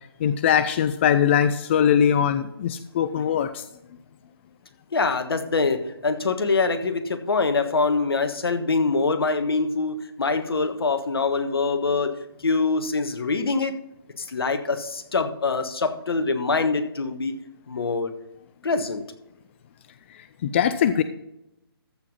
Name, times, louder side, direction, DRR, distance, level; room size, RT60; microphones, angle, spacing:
voice 1, 0.2-3.6 20.4-21.0, left 8 dB, 30° left, 12 dB, 0.4 m, -21 dB
voice 2, 4.9-13.8 14.2-17.3 17.7-18.1 18.6-19.0, left 4 dB, 70° left, 9 dB, 1.4 m, -24 dB
14.0 x 4.9 x 5.4 m, 0.86 s
figure-of-eight pair, 150°, 13 cm